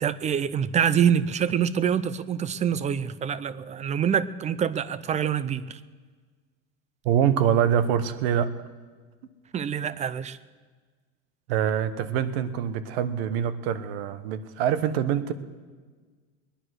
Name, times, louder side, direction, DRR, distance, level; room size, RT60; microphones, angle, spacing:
voice 1, 0.0-5.8 9.5-10.4, right 8 dB, 25° right, 17 dB, 0.6 m, -25 dB
voice 2, 7.0-8.5 11.5-15.3, right 9 dB, 85° right, 13 dB, 1.1 m, -24 dB
21.5 x 10.0 x 6.4 m, 1.5 s
supercardioid pair, 135°, 29 cm